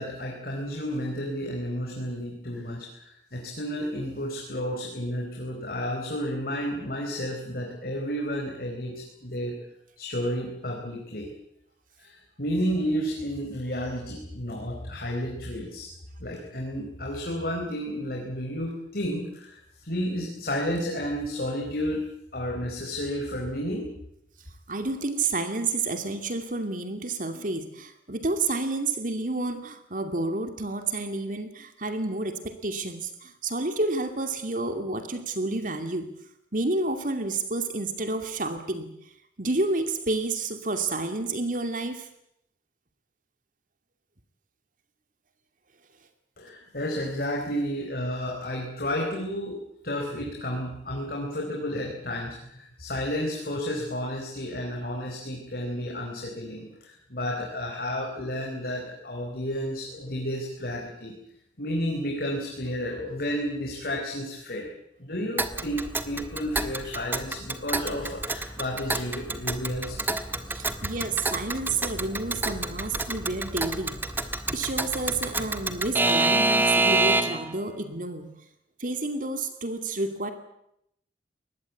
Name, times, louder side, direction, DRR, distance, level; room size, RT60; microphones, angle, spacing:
voice 1, 0.0-9.6 10.0-11.3 12.0-15.9 16.2-23.9 46.4-61.1 61.6-64.7 65.0-70.0, equal, 55° left, 0 dB, 4.4 m, -32 dB
voice 2, 24.7-36.1 36.5-38.9 39.4-42.1 70.5-74.0 74.5-78.3 78.8-80.3, right 2 dB, 50° right, 7 dB, 2.6 m, -30 dB
Alarm / Clock, 65.4-77.5, right 2 dB, 10° right, 1.4 m, -27 dB
24.0 x 20.0 x 8.5 m, 0.77 s
head